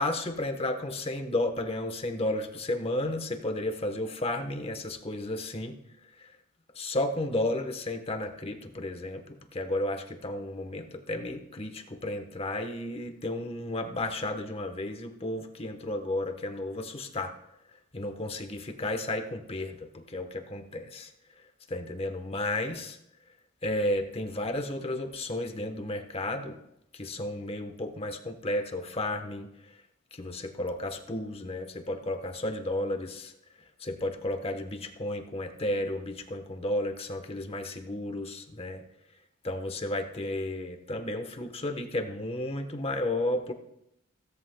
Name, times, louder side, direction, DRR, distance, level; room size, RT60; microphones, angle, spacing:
voice 1, 0.0-5.7 6.2-6.3 6.7-17.3 17.9-21.1 21.7-23.0 23.6-26.6 26.9-29.5 30.1-33.3 33.8-38.8 39.4-43.5, left 1 dB, 30° left, 6 dB, 1.0 m, -33 dB
17.0 x 13.5 x 2.2 m, 0.80 s
head